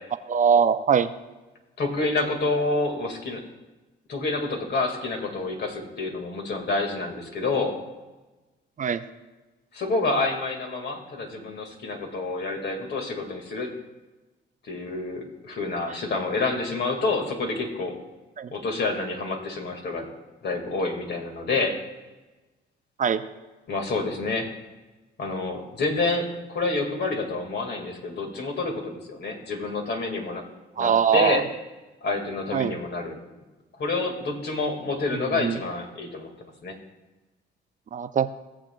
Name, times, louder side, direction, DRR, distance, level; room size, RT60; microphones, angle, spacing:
voice 1, 0.3-1.1 8.8-9.0 18.4-18.5 23.0-23.2 30.8-31.4 32.5-32.7 35.4-35.6 37.9-38.3, right 7 dB, 40° right, 11 dB, 0.4 m, -21 dB
voice 2, 1.8-3.4 4.1-7.8 9.7-13.7 14.7-18.0 18.5-20.1 20.4-21.8 23.7-24.5 25.2-30.4 30.8-31.5 32.0-33.2 33.8-36.3 36.6-36.7, left 3 dB, 60° left, 3 dB, 1.9 m, -28 dB
17.0 x 7.5 x 2.3 m, 1.2 s
cardioid pair, 90°, 20 cm